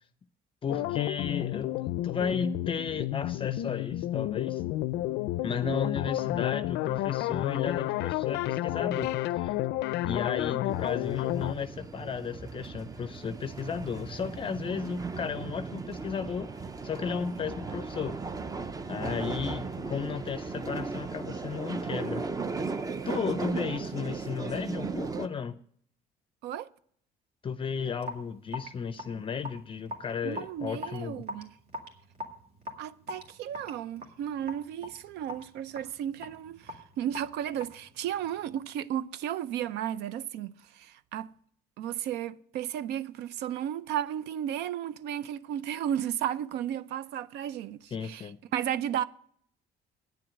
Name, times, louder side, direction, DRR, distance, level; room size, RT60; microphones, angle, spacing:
voice 1, 0.6-4.6 5.4-9.6 10.1-16.5 16.8-18.2 18.9-22.3 23.1-25.6 27.4-31.2 47.9-48.4, left 6 dB, 30° left, 0.5 m, -34 dB
sound 1, 0.7-11.5, left 15 dB, 85° left, 0.4 m, -31 dB
voice 2, 5.6-5.9 23.5-23.6 24.0-24.2 26.4-26.7 30.2-31.5 32.8-41.3 41.8-49.0, right 10 dB, 85° right, 0.5 m, -34 dB
sound 2, 10.7-25.3, right 4 dB, 20° right, 0.6 m, -36 dB
Raindrop / Drip, 28.0-38.5, left 1 dB, 60° right, 2.2 m, -43 dB
9.3 x 7.8 x 7.5 m
cardioid pair, 110°, 17 cm